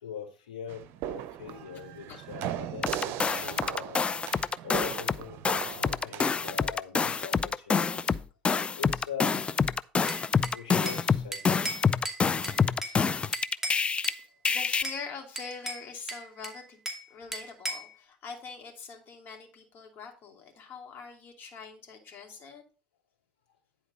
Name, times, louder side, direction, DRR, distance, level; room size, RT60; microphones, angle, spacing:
voice 1, 0.0-4.3 4.6-8.1 8.8-9.4 10.5-11.6, left 7 dB, 80° left, 2.5 m, -42 dB
sound 1, 0.7-6.6, right 12 dB, 55° right, 0.6 m, -38 dB
sound 2, 2.8-5.2 5.4-14.1 14.4-14.8, left 5 dB, 25° left, 0.4 m, -27 dB
voice 2, 3.3-3.6 4.9-5.0 5.7-5.8 12.8-13.4 14.2-16.8 17.1-22.6, left 5 dB, 45° left, 2.7 m, -44 dB
Bell / Glass, 10.1-11.1 11.3-13.0 13.3-14.2 14.5-15.0 15.4-17.1 17.3-17.9, right 1 dB, 10° right, 2.5 m, -37 dB
10.0 x 4.5 x 5.1 m
hypercardioid pair, 70°, 5 cm